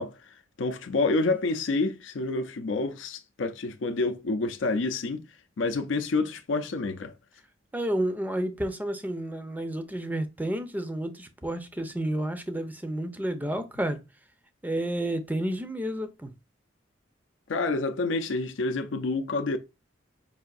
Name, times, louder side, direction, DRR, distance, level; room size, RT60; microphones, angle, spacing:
voice 1, 0.0-5.2 5.6-7.1 17.5-19.6, left 3 dB, 75° left, 0.5 m, -28 dB
voice 2, 7.7-14.0 14.6-16.3, right 1 dB, 10° right, 0.5 m, -30 dB
4.8 x 2.6 x 2.3 m
head